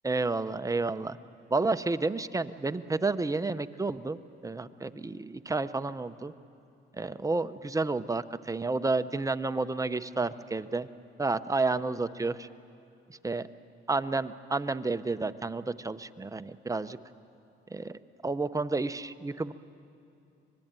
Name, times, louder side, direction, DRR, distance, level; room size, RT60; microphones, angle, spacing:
voice 1, 0.0-1.2 1.5-6.3 6.9-10.9 11.2-12.5 13.2-13.5 13.9-17.0 17.7-17.9 18.2-19.5, right 3 dB, 15° right, 11 dB, 0.7 m, -30 dB
25.5 x 20.5 x 9.0 m, 2.6 s
cardioid pair, 90°, 20 cm